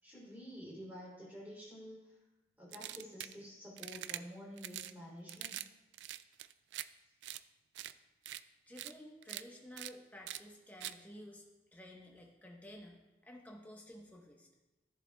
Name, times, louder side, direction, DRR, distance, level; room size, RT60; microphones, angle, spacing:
voice 1, 0.0-2.2 2.6-5.6, equal, 10° right, -6 dB, 3.2 m, -50 dB
sound 1, 2.7-3.4 3.8-4.2 4.6-4.9 5.3-5.7 5.9-6.9 7.2-7.4 7.8-7.9 8.3-8.4 8.8-8.9 9.2-9.4 9.8-9.9 10.3-10.4 10.8-10.9, right 13 dB, 80° right, 0.3 m, -43 dB
voice 2, 8.7-11.4 11.7-14.5, left 1 dB, 10° left, -1 dB, 1.0 m, -53 dB
14.0 x 6.9 x 2.3 m, 1.1 s
head